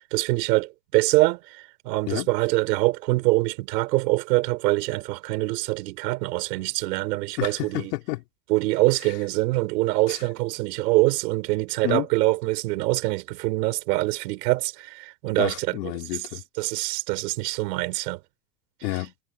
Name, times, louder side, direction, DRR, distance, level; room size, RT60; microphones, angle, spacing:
voice 1, 0.1-7.9 8.5-15.9 16.6-18.2, right 20 dB, 85° right, 5.3 m, -24 dB
voice 2, 7.4-8.2 10.1-10.2 11.8-12.1 15.4-16.4 18.8-19.1, left 22 dB, 80° left, 3.3 m, -30 dB
supercardioid pair, 120°, 48 cm